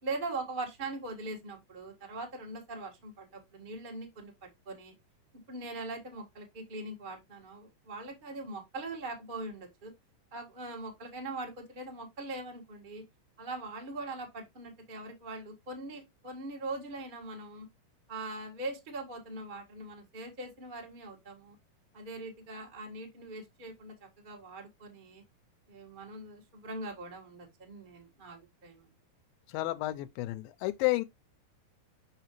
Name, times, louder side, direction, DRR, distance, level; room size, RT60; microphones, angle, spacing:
voice 1, 0.0-4.9 5.3-9.9 10.3-13.1 13.4-17.7 18.1-21.6 21.9-25.2 25.7-28.9, right 2 dB, 70° right, 0.4 m, -41 dB
voice 2, 29.5-31.0, left 19 dB, 85° left, 2.3 m, -31 dB
5.8 x 5.4 x 3.0 m
omnidirectional pair, 4.1 m